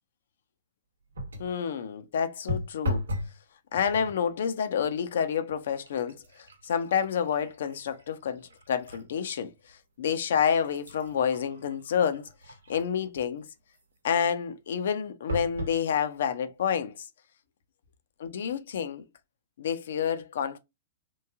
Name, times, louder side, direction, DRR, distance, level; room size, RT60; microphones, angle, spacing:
sound 1, 1.1-1.6 2.5-3.4 3.7-4.2 5.0-5.1 5.5-9.1 9.6-9.7 10.3-13.1 15.3-15.8 16.5-16.6 16.8-16.9, left 1 dB, 80° right, 0.8 m, -37 dB
voice 1, 1.4-3.0 3.7-6.2 6.6-9.5 10.0-12.3 12.7-13.5 14.0-17.1 18.2-19.0 19.6-20.6, left 7 dB, 65° left, 0.5 m, -28 dB
3.1 x 2.5 x 2.3 m
figure-of-eight pair, 110°, 0 cm